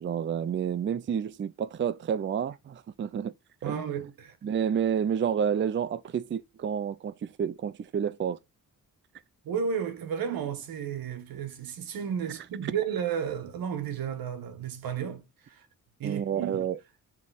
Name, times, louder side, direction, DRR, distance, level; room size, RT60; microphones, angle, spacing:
voice 1, 0.0-3.3 3.6-4.0 4.4-8.4 16.0-16.8, right 8 dB, 35° right, 0.5 m, -30 dB
voice 2, 3.6-4.4 9.4-15.7 16.0-16.6, right 7 dB, 85° right, 1.5 m, -33 dB
7.4 x 3.7 x 4.1 m
cardioid pair, 105°, 34 cm